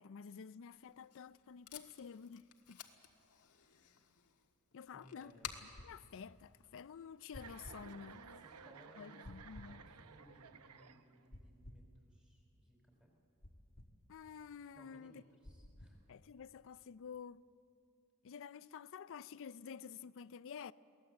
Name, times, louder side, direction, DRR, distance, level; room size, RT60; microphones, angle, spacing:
voice 1, 0.0-2.8 4.7-8.4 9.0-9.9 14.1-15.2 16.1-17.4 18.2-20.7, left 6 dB, 60° left, 0.4 m, -51 dB
Packing tape duct tape, 0.7-7.2, left 8 dB, 80° left, 1.6 m, -54 dB
voice 2, 4.9-5.7 8.3-9.3 9.7-13.1 14.7-16.0, equal, 5° right, 4.5 m, -64 dB
sound 1, 5.4-5.9 7.3-7.8 9.2-9.7 11.3-11.9 13.4-13.9 15.4-16.0, left 1 dB, 45° left, 1.4 m, -54 dB
Chuckle chortle, 7.3-11.4, right 6 dB, 80° right, 0.8 m, -56 dB
23.0 x 18.0 x 7.8 m
head